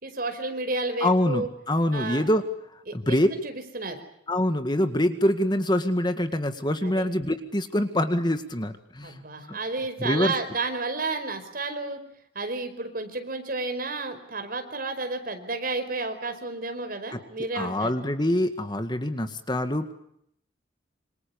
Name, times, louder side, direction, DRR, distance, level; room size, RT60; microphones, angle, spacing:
voice 1, 0.0-1.5 1.9-2.2 2.9-3.2 3.4-4.0 6.8-7.1 9.0-12.0 12.3-17.9, right 3 dB, 50° right, 7 dB, 5.0 m, -31 dB
voice 2, 1.0-2.4 2.7-3.3 4.3-9.2 9.5-9.6 10.0-10.3 17.1-17.2 17.5-19.9, left 1 dB, 25° left, 8 dB, 1.9 m, -25 dB
27.0 x 27.0 x 7.1 m, 0.74 s
head